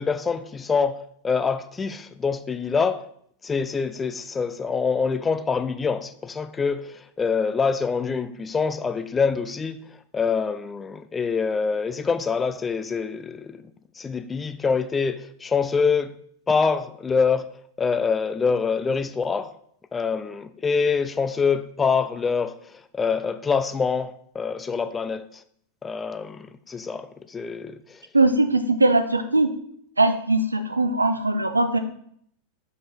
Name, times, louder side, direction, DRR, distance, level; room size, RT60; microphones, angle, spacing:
voice 1, 0.0-3.0 3.4-9.8 10.1-13.6 14.0-16.1 16.5-17.5 17.8-19.5 19.9-25.4 25.8-28.0, left 5 dB, 15° left, 0.4 m, -25 dB
voice 2, 28.1-29.5 30.0-31.8, right 2 dB, 80° right, 0.5 m, -20 dB
5.7 x 5.3 x 3.4 m
figure-of-eight pair, 90°, 0 cm